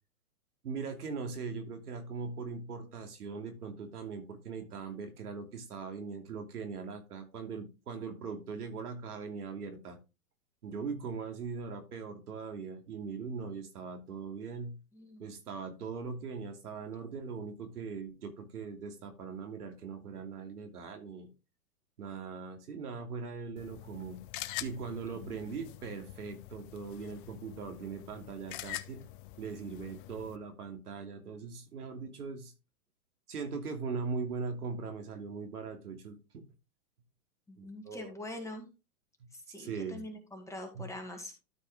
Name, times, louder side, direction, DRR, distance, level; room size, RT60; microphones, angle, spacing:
voice 1, 0.6-10.0 10.6-14.8 15.2-21.3 22.0-24.2 24.6-29.0 29.4-32.5 33.3-36.4 37.6-38.1 39.6-40.0 40.7-40.9, right 5 dB, 85° right, 4 dB, 2.8 m, -40 dB
voice 2, 14.9-15.3 25.1-25.5 37.5-38.7 39.5-41.3, left 1 dB, 5° left, 2 dB, 1.8 m, -44 dB
sound 1, 23.6-30.4, left 15 dB, 35° left, 0.6 m, -45 dB
12.5 x 4.6 x 3.6 m, 0.28 s
hypercardioid pair, 135°, 44 cm